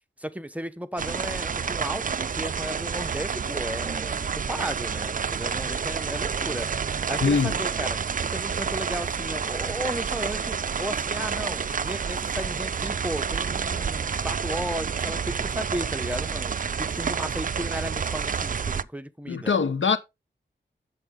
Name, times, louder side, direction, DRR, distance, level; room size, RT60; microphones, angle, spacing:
voice 1, 0.2-6.7 7.1-16.5 16.8-19.5, equal, 5° right, 0.9 m, -35 dB
sound 1, 1.0-18.8, right 6 dB, 45° right, 0.4 m, -29 dB
voice 2, 7.2-7.5 19.3-20.0, left 5 dB, 75° left, 1.0 m, -22 dB
8.5 x 7.1 x 3.8 m
wide cardioid pair, 70°, 20 cm